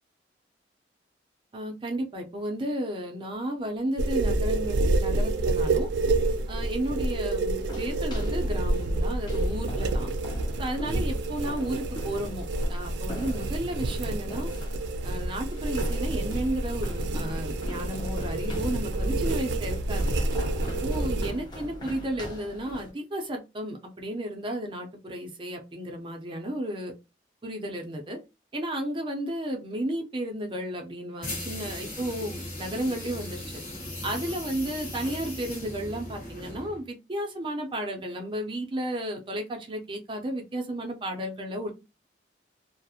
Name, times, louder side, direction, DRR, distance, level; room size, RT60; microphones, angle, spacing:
voice 1, 1.5-5.9 6.5-10.1 10.6-14.5 15.0-20.1 20.8-26.9 27.4-28.2 28.5-33.6 34.0-41.7, right 1 dB, 30° right, 3 dB, 0.5 m, -33 dB
sound 1, 4.0-21.3, right 2 dB, 90° right, 0.4 m, -28 dB
sound 2, 7.6-22.9, equal, 25° left, 0.6 m, -40 dB
sound 3, 31.2-36.8, left 1 dB, 55° left, 1.1 m, -38 dB
2.3 x 2.0 x 2.7 m, 0.26 s
head